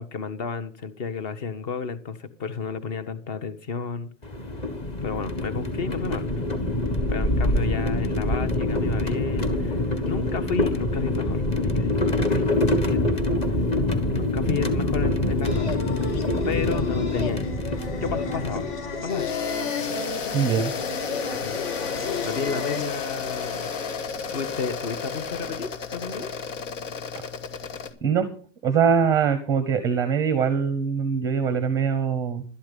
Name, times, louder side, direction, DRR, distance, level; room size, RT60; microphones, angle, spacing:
voice 1, 0.0-4.1 5.0-6.2 7.1-11.4 11.7-13.3 14.1-15.8 16.4-17.5 18.0-18.7 19.0-19.4 21.3-21.6 22.2-23.7 24.3-26.3, left 5 dB, 35° left, 13 dB, 1.4 m, -32 dB
sound 1, 4.2-19.2, left 1 dB, 15° left, 1.2 m, -25 dB
sound 2, 15.4-22.8, left 5 dB, 60° left, 4.5 m, -33 dB
sound 3, 19.1-27.9, left 6 dB, 80° left, 2.5 m, -32 dB
voice 2, 20.3-20.7 28.0-28.3 28.6-32.4, right 7 dB, 10° right, 11 dB, 0.8 m, -22 dB
12.0 x 12.0 x 5.4 m, 0.41 s
supercardioid pair, 180°, 38 cm